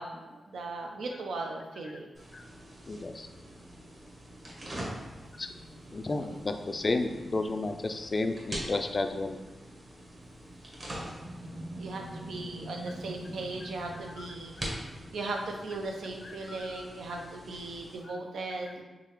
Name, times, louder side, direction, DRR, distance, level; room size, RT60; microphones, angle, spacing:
voice 1, 0.0-2.1 6.2-6.4 11.8-18.8, right 2 dB, 90° right, 2 dB, 0.5 m, -38 dB
sound 1, 2.1-18.0, right 1 dB, 35° right, 0.9 m, -43 dB
voice 2, 2.9-3.3 5.4-5.5 5.9-9.4 14.2-14.3 16.2-16.9 17.2-17.3 18.1-18.2, left 2 dB, 35° left, 6 dB, 0.3 m, -32 dB
3.8 x 3.2 x 3.0 m, 1.2 s
wide cardioid pair, 100°, 0 cm